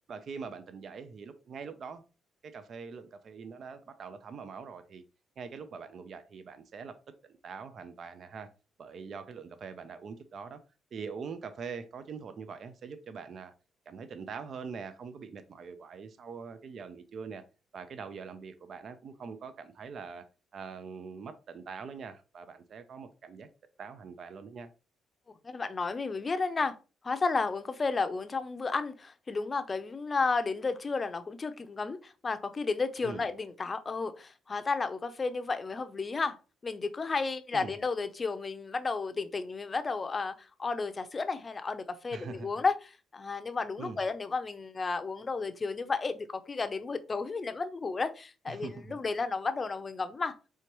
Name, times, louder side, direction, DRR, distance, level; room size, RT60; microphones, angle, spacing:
voice 1, 0.1-2.0 2.4-5.0 5.4-7.0 7.2-8.5 8.8-10.6 10.9-13.5 13.9-17.4 17.7-20.3 20.5-23.5 23.8-24.7 33.0-33.2 37.5-37.7 42.1-42.5 43.8-44.0 48.5-49.0, right 5 dB, 55° right, 0.5 m, -43 dB
voice 2, 25.4-26.7 27.0-36.4 36.6-50.3, left 4 dB, 30° left, 0.6 m, -32 dB
4.5 x 3.4 x 3.0 m
cardioid pair, 90°, 0 cm